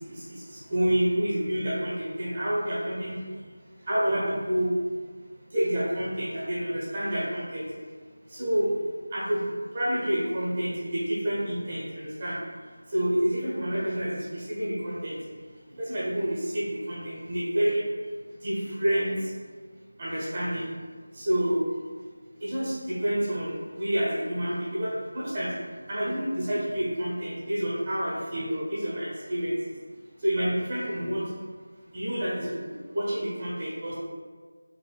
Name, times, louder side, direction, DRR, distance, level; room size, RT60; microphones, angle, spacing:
voice 1, 0.1-3.1 3.9-4.7 5.5-7.6 8.3-8.7 9.1-9.4 9.7-12.4 12.9-15.2 15.8-17.8 18.4-19.1 20.0-20.7 21.1-21.6 22.4-25.5 25.9-29.6 30.2-31.2 31.9-33.9, equal, 30° right, -8 dB, 1.1 m, -28 dB
5.1 x 2.6 x 2.3 m, 1.5 s
figure-of-eight pair, 165°, 0 cm